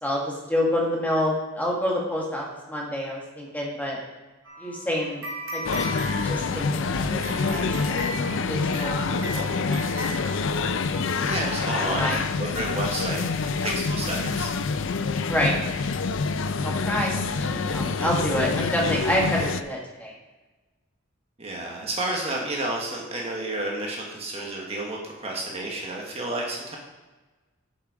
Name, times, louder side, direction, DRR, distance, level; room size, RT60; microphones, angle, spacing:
voice 1, 0.0-4.0 4.6-5.2 5.5-5.6 6.2-10.3 10.6-11.5 11.8-12.2 15.2-15.6 16.6-20.1, equal, 10° left, -3 dB, 1.7 m, -28 dB
sound 1, 4.5-11.0, right 1 dB, 80° right, 2.4 m, -37 dB
sound 2, 5.6-19.6, left 4 dB, 70° left, 0.5 m, -27 dB
voice 2, 11.2-12.1 12.4-13.2 13.6-14.5 18.0-18.1 21.4-26.8, right 2 dB, 30° right, -2 dB, 1.5 m, -30 dB
7.9 x 7.4 x 4.9 m, 1.2 s
head